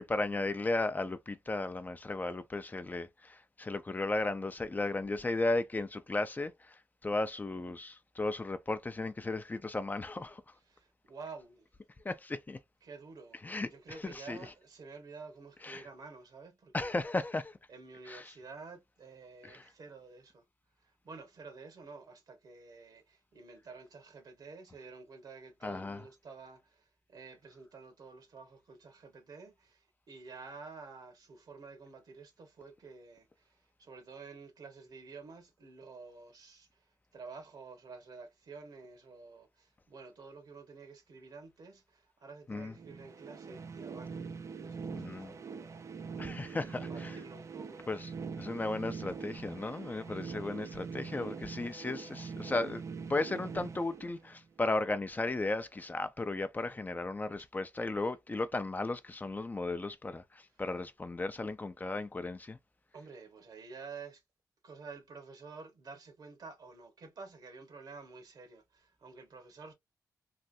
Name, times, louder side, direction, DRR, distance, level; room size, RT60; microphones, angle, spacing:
voice 1, 0.0-10.4 12.0-12.6 13.3-14.5 15.6-15.9 16.7-17.6 18.0-18.3 19.4-19.6 25.6-26.0 42.5-42.8 44.9-45.3 46.2-47.2 47.9-48.1 48.4-52.8 53.1-62.6, left 2 dB, 25° left, 0.5 m, -35 dB
voice 2, 10.7-11.7 12.8-17.1 17.7-20.4 20.8-44.3 44.6-45.9 46.7-47.9 62.9-64.2 64.6-69.7, right 4 dB, 75° right, 1.3 m, -50 dB
sound 1, 42.7-54.6, right 5 dB, 50° right, 0.5 m, -43 dB
3.3 x 2.5 x 2.5 m
cardioid pair, 70°, 7 cm